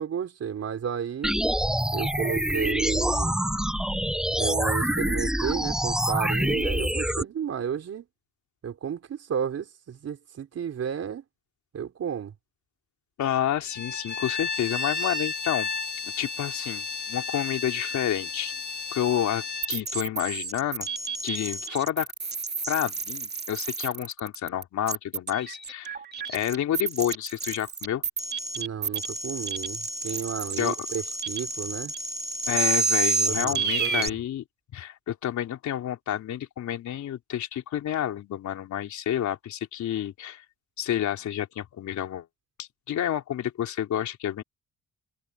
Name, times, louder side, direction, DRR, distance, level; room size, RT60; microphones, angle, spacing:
voice 1, 0.0-1.3 1.9-3.3 4.4-8.1 8.6-11.2 11.7-12.3 28.6-31.9 33.3-34.2, right 8 dB, 55° right, 3.8 m, -32 dB
sound 1, 1.2-7.2, equal, ahead, 1.1 m, -26 dB
voice 2, 13.2-15.7 16.2-18.5 18.9-20.9 21.2-22.1 22.7-26.0 26.3-28.0 30.6-30.8 32.5-34.4 34.7-40.4 40.8-42.2 42.6-44.4, left 11 dB, 70° left, 3.3 m, -29 dB
Bowed string instrument, 13.7-19.8, left 4 dB, 35° left, 4.2 m, -33 dB
sound 2, 19.6-34.1, right 4 dB, 35° right, 3.3 m, -30 dB
cardioid pair, 90°, 30 cm